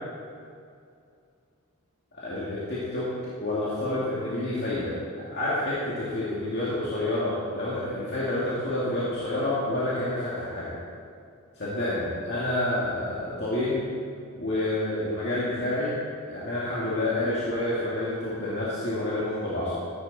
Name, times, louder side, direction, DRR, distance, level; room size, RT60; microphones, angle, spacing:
voice 1, 2.1-3.1 3.4-5.0 5.3-10.7 11.6-13.8 14.3-16.0 16.3-19.7, left 1 dB, 50° left, -9 dB, 2.3 m, -28 dB
14.5 x 9.5 x 4.2 m, 2.3 s
head